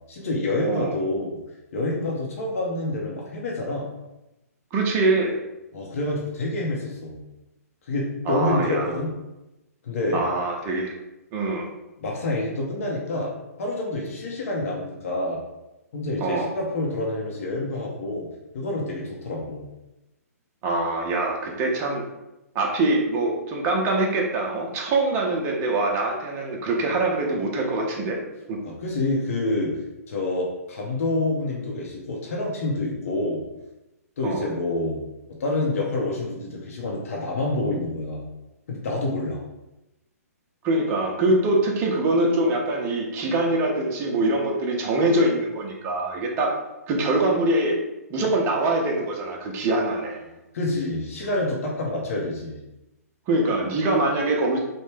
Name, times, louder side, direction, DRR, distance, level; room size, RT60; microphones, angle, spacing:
voice 1, 0.1-1.4 1.7-3.9 5.7-7.2 7.9-9.1 9.8-10.2 12.0-13.3 13.6-15.4 15.9-18.3 18.5-19.7 28.6-29.7 30.1-33.4 34.2-35.0 35.4-38.2 38.7-39.4 50.5-52.6, left 2 dB, 60° left, -2 dB, 0.7 m, -27 dB
voice 2, 0.6-1.0 4.7-5.4 8.3-8.9 10.1-10.9 11.3-11.7 16.2-16.5 20.6-22.0 22.5-28.2 28.5-28.6 34.2-34.5 40.6-46.5 46.9-47.8 48.1-50.3 53.3-54.6, right 2 dB, 25° right, 0 dB, 0.6 m, -24 dB
3.0 x 2.2 x 3.3 m, 0.96 s
hypercardioid pair, 135°, 9 cm